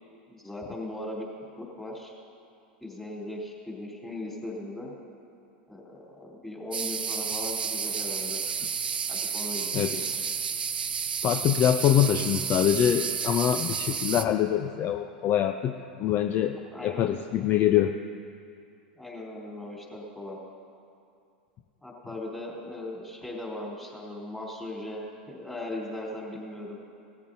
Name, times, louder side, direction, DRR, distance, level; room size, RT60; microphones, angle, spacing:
voice 1, 0.3-1.3 1.6-2.1 2.8-4.9 5.7-8.4 9.1-10.2 16.7-17.1 19.0-20.4 21.8-26.8, left 1 dB, 5° left, -4 dB, 3.5 m, -38 dB
sound 1, 6.7-14.3, right 6 dB, 85° right, 0.6 m, -31 dB
voice 2, 11.2-16.6 16.8-18.0, left 10 dB, 40° left, 7 dB, 0.5 m, -24 dB
18.0 x 14.0 x 2.7 m, 2.5 s
hypercardioid pair, 90°, 5 cm